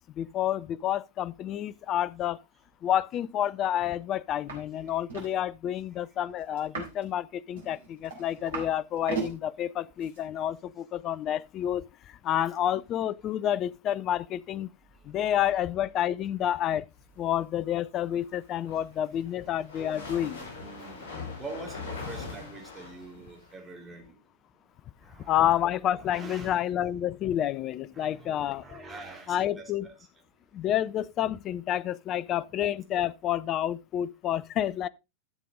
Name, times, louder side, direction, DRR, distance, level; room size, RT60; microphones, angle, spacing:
voice 1, 0.2-2.4 2.8-14.7 15.0-16.9 17.2-20.4 25.2-28.8 29.3-29.9 30.5-34.9, left 11 dB, 35° left, 0.4 m, -29 dB
sound 1, 4.5-4.6 4.9-5.3 6.6-7.0 7.6-8.7 9.0-9.3 10.0-10.2, right 5 dB, 60° right, 4.2 m, -36 dB
sound 2, 18.4-23.5, left 4 dB, 50° left, 6.4 m, -41 dB
voice 2, 18.7-20.1 20.6-21.1 21.4-24.2 25.0-26.9 27.9-29.9 32.3-32.4, right 3 dB, 15° right, 3.5 m, -46 dB
12.0 x 7.5 x 3.7 m
figure-of-eight pair, 90°, 0 cm